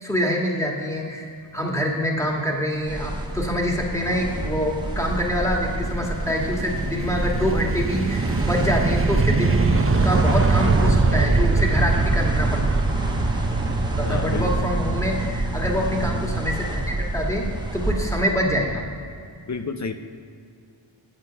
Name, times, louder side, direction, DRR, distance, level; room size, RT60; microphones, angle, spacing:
voice 1, 0.0-12.6 14.0-18.8, equal, 5° left, -1 dB, 1.6 m, -25 dB
sound 1, 2.9-18.2, right 1 dB, 10° right, 1.1 m, -29 dB
sound 2, 3.4-18.9, right 3 dB, 30° right, 0.6 m, -24 dB
voice 2, 14.0-14.6 19.5-19.9, left 4 dB, 40° left, 8 dB, 0.5 m, -30 dB
8.8 x 7.9 x 5.7 m, 2.4 s
wide cardioid pair, 70°, 47 cm